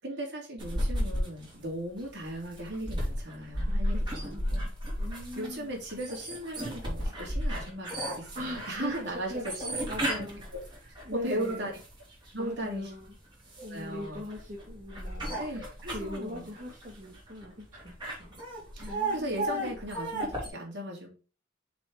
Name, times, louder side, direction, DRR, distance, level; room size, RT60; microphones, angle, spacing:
voice 1, 0.0-4.7 5.4-9.9 10.1-10.2 10.5-10.6 10.9-11.8 12.3-12.9 13.6-14.2 15.4-16.5 18.8-21.1, right 1 dB, 60° right, 0 dB, 3.2 m, -37 dB
sound 1, 0.6-12.3 12.9-20.5, equal, 25° right, 3.5 m, -34 dB
voice 2, 3.7-4.6 5.0-5.7 8.3-8.9 9.3-10.4 11.1-11.7 12.4-13.1 13.6-18.4 18.8-19.6, left 1 dB, 40° right, -3 dB, 1.8 m, -41 dB
6.9 x 4.6 x 5.0 m, 0.35 s
head